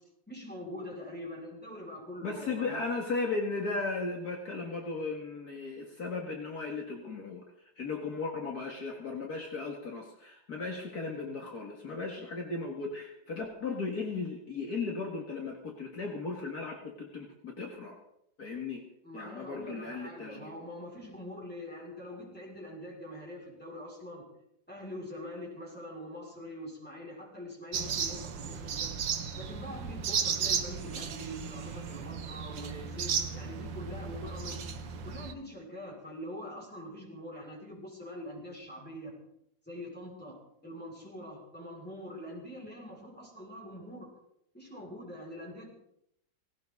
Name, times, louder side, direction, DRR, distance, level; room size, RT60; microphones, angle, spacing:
voice 1, 0.3-2.8 19.0-24.3 24.7-28.9 29.3-34.6 35.0-39.2 39.7-40.4 40.6-44.1 44.5-45.7, equal, 5° left, -3 dB, 6.1 m, -44 dB
voice 2, 2.2-7.4 7.8-18.0 18.4-18.8 19.1-20.5, left 3 dB, 55° left, 0 dB, 2.6 m, -36 dB
sound 1, 27.7-35.3, right 6 dB, 75° right, 1.8 m, -35 dB
18.5 x 18.0 x 4.0 m, 0.75 s
omnidirectional pair, 2.0 m